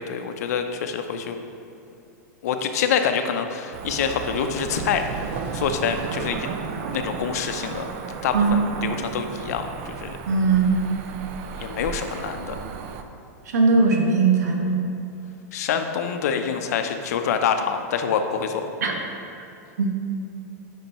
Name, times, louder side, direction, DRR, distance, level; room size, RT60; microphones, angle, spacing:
voice 1, 0.0-1.4 2.4-5.0 5.5-6.5 6.9-7.8 8.2-10.1 11.6-12.6 15.5-18.7, left 7 dB, 70° left, 7 dB, 0.6 m, -26 dB
Cricket / Motor vehicle (road), 3.7-13.0, right 6 dB, 50° right, 0.5 m, -34 dB
voice 2, 10.3-10.7 13.5-14.8 18.8-18.9 19.8-19.9, right 4 dB, 85° right, 2 dB, 1.1 m, -19 dB
8.9 x 5.3 x 3.0 m, 2.5 s
supercardioid pair, 140°, 9 cm